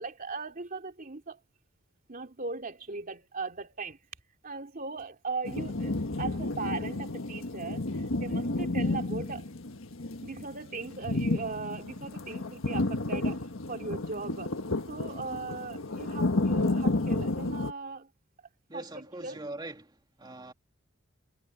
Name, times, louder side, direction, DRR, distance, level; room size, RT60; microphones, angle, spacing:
voice 1, 0.0-1.4 2.1-4.0 4.4-9.5 10.2-14.6 14.9-18.1 18.7-19.4, right 3 dB, 40° right, 3.0 m, -39 dB
sound 1, 5.4-17.7, left 2 dB, 75° left, 1.5 m, -31 dB
voice 2, 18.7-20.5, right 2 dB, 20° right, 2.8 m, -42 dB
head